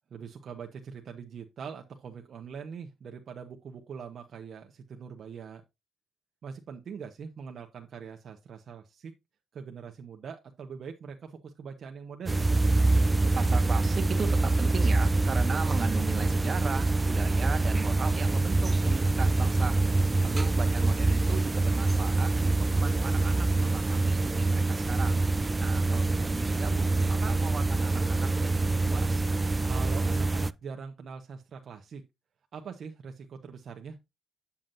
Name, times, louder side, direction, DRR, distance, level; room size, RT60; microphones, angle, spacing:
voice 1, 0.1-5.6 6.4-9.1 9.5-12.5 20.1-20.5 25.9-26.0 29.6-32.0 32.5-34.0, right 6 dB, 60° right, 1.0 m, -42 dB
sound 1, 12.3-30.5, right 2 dB, 20° right, 0.4 m, -25 dB
voice 2, 13.3-19.8 20.2-25.3 25.6-29.3, right 5 dB, 40° right, 1.6 m, -38 dB
9.0 x 7.2 x 2.6 m
cardioid pair, 95°, 0 cm